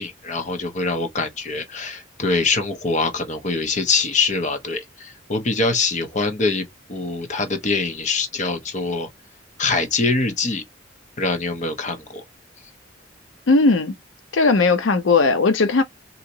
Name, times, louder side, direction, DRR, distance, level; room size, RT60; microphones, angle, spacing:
voice 1, 0.0-9.1 9.6-10.6 11.2-12.2, left 3 dB, 40° left, 0.9 m, -24 dB
voice 2, 13.5-13.9 14.3-15.8, left 3 dB, 90° left, 0.6 m, -17 dB
4.0 x 2.9 x 2.7 m
head